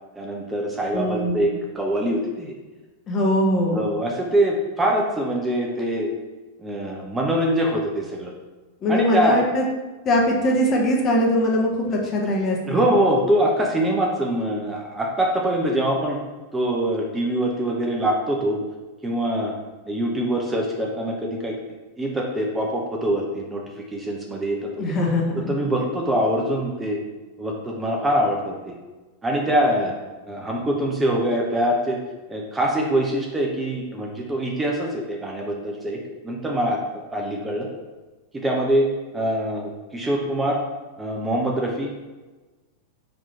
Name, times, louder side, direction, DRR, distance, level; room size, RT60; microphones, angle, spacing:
voice 1, 0.2-2.5 3.7-6.1 6.6-8.3 8.9-9.4 12.7-16.2 16.5-18.6 19.0-19.5 19.9-21.5 22.0-24.9 25.3-27.0 27.4-28.7 29.2-29.9 30.3-32.0 32.3-36.0 36.2-36.8 37.1-37.7 38.3-38.9 39.1-40.6 41.0-42.0, right 1 dB, 10° right, -1 dB, 0.7 m, -24 dB
voice 2, 0.9-1.4 3.1-3.9 8.8-9.6 10.0-12.9 24.8-25.4, left 1 dB, 30° left, -1 dB, 0.9 m, -21 dB
4.3 x 2.9 x 4.2 m, 1.2 s
figure-of-eight pair, 90°, 0 cm